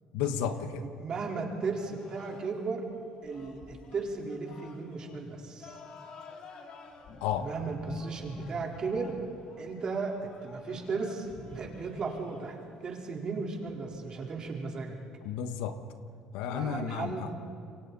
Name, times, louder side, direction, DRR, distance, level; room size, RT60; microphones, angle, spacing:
voice 1, 0.1-0.9 7.2-7.5 15.2-15.8 16.3-17.3, left 8 dB, 85° left, 8 dB, 1.3 m, -32 dB
voice 2, 0.8-2.9 3.2-5.8 7.4-9.2 9.6-15.0 16.5-17.3, right 4 dB, 40° right, 0 dB, 4.0 m, -35 dB
sound 1, 1.6-14.5, left 4 dB, 55° left, 3.1 m, -52 dB
28.0 x 23.5 x 4.1 m, 2.5 s
cardioid pair, 100°, 2 cm